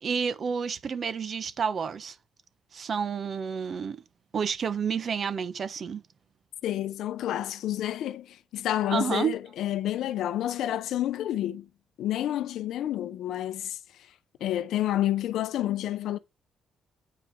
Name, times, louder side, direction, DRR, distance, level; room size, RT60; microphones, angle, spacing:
voice 1, 0.0-2.2 2.7-4.0 4.3-6.0 8.9-9.4, right 6 dB, 50° right, 1.1 m, -30 dB
voice 2, 6.6-11.7 12.0-13.8 14.4-16.2, left 12 dB, 80° left, 0.8 m, -29 dB
9.2 x 4.9 x 4.7 m
cardioid pair, 90°, 0 cm